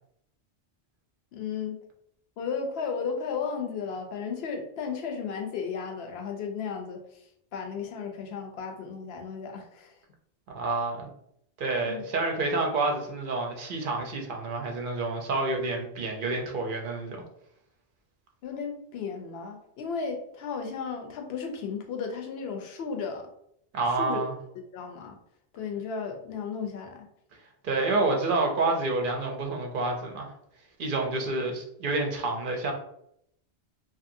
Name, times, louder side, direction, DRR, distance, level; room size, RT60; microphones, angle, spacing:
voice 1, 1.3-1.8 2.4-9.9 11.7-12.0 18.4-23.3 23.9-24.2 24.6-25.2 25.5-27.1, left 5 dB, 70° left, 3 dB, 0.8 m, -34 dB
voice 2, 10.5-11.1 11.6-17.2 23.7-24.3 27.6-30.3 30.8-32.7, right 3 dB, 55° right, 2 dB, 0.7 m, -28 dB
2.8 x 2.6 x 2.5 m, 0.73 s
omnidirectional pair, 1.1 m